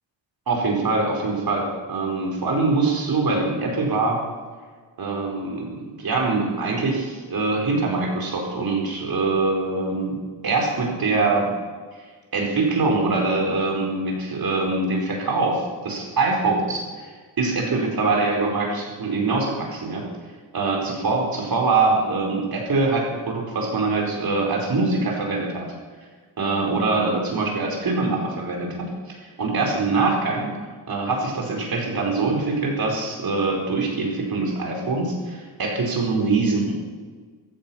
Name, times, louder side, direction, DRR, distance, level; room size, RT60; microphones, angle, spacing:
voice 1, 0.5-4.2 5.0-11.6 12.3-20.1 20.5-25.7 26.4-28.9 29.2-30.5 30.9-36.7, right 3 dB, 55° right, 1 dB, 4.6 m, -23 dB
15.0 x 14.0 x 5.8 m, 1.5 s
wide cardioid pair, 145°, 44 cm